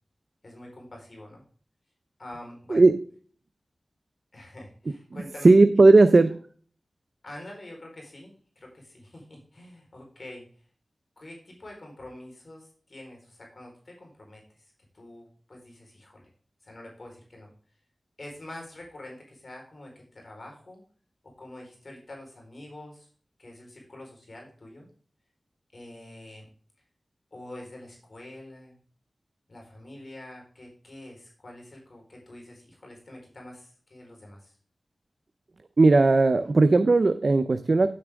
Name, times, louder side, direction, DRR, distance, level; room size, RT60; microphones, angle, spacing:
voice 1, 0.4-1.4 2.2-2.8 4.3-5.5 6.0-6.1 7.2-10.6 11.2-16.3 16.6-17.5 18.2-20.8 21.2-23.1 23.4-24.9 25.7-26.5 27.3-28.8 29.5-34.6, left 1 dB, 60° left, 0 dB, 4.3 m, -46 dB
voice 2, 5.4-6.3 35.8-37.9, right 3 dB, 60° right, 10 dB, 0.6 m, -17 dB
9.8 x 8.6 x 3.6 m, 0.44 s
cardioid pair, 45°, 0 cm